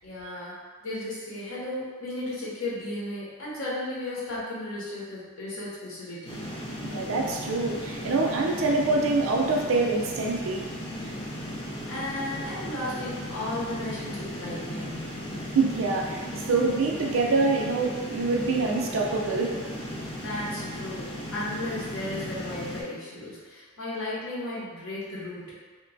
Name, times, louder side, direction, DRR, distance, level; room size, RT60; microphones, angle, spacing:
voice 1, 0.0-6.4 11.9-15.1 20.2-25.5, left 1 dB, 80° left, -7 dB, 1.0 m, -35 dB
sound 1, 6.3-22.8, equal, 25° left, 0.4 m, -36 dB
voice 2, 6.8-10.6 15.5-19.5, right 3 dB, 70° right, 0 dB, 0.4 m, -25 dB
2.9 x 2.2 x 2.6 m, 1.4 s
head